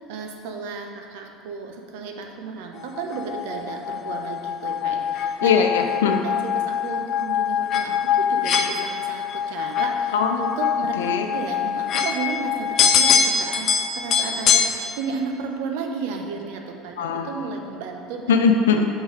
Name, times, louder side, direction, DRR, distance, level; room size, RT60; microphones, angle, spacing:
voice 1, 0.0-5.6 6.1-10.9 11.3-18.2, right 5 dB, 70° right, 3 dB, 0.9 m, -33 dB
sound 1, 2.9-14.7, left 7 dB, 45° left, 0.8 m, -23 dB
voice 2, 5.4-6.2 10.1-10.4 11.0-11.3 17.0-17.3 18.3-18.9, left 5 dB, 80° left, 4 dB, 0.7 m, -20 dB
6.4 x 6.3 x 5.2 m, 2.4 s
hypercardioid pair, 75°, 0 cm